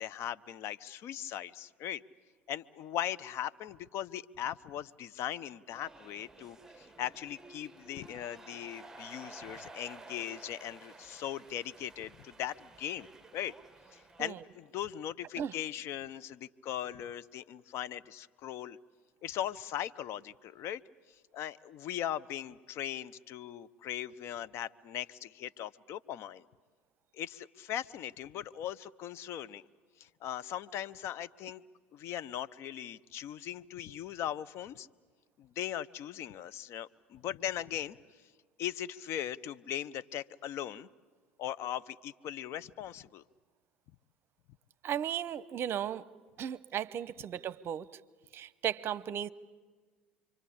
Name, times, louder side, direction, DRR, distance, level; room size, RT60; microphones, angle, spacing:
voice 1, 0.0-2.0 2.5-13.1 13.3-13.5 13.9-18.8 19.2-20.8 21.3-26.4 27.1-29.6 30.0-31.6 31.9-34.9 35.4-38.0 38.6-40.9 41.4-43.2, left 11 dB, 55° left, 15 dB, 0.7 m, -39 dB
sound 1, 5.7-14.5, right 2 dB, 10° right, 1.4 m, -53 dB
voice 2, 44.8-46.0 46.4-47.9 48.3-49.3, right 9 dB, 45° right, 17 dB, 0.8 m, -35 dB
27.5 x 24.0 x 8.7 m, 1.5 s
hypercardioid pair, 70°, 6 cm